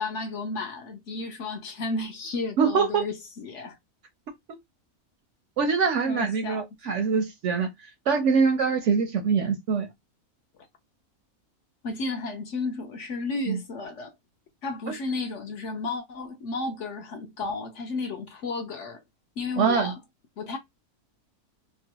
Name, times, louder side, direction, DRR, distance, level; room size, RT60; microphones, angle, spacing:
voice 1, 0.0-3.8 6.1-6.6 10.6-10.7 11.8-14.1 14.6-19.0 19.4-20.0 20.4-20.6, left 3 dB, 65° left, 0.8 m, -33 dB
voice 2, 2.6-3.1 5.6-7.7 8.1-9.9 13.5-13.6 14.9-15.0 19.6-19.9, right 5 dB, 65° right, 0.7 m, -24 dB
2.9 x 2.2 x 2.9 m
omnidirectional pair, 1.6 m